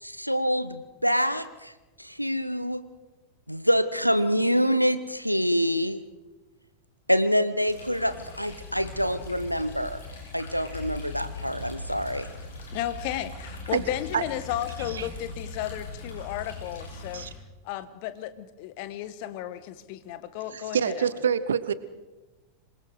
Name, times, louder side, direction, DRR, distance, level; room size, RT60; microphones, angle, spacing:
voice 1, 0.0-1.7 2.0-2.8 3.5-6.0 7.1-10.0 10.3-12.3, equal, 90° left, 13 dB, 1.0 m, -26 dB
sound 1, 7.7-17.3, left 3 dB, 65° left, 7.0 m, -40 dB
voice 2, 12.7-17.2 17.6-21.1, left 13 dB, 45° left, 13 dB, 1.4 m, -34 dB
voice 3, 20.5-21.7, right 7 dB, 65° right, 16 dB, 1.0 m, -26 dB
26.5 x 22.0 x 4.9 m, 1.1 s
figure-of-eight pair, 90°, 0 cm